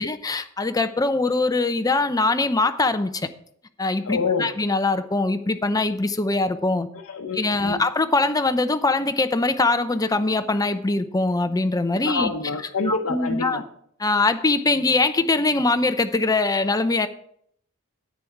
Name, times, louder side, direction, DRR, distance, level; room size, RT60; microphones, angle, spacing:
voice 1, 0.0-3.3 3.8-6.9 7.3-12.3 12.9-13.6 14.0-17.1, left 3 dB, 15° left, 10 dB, 0.6 m, -22 dB
voice 2, 4.1-4.5 7.1-7.8 12.1-13.6, left 4 dB, 65° left, 0 dB, 0.9 m, -27 dB
10.0 x 8.6 x 4.6 m, 0.66 s
head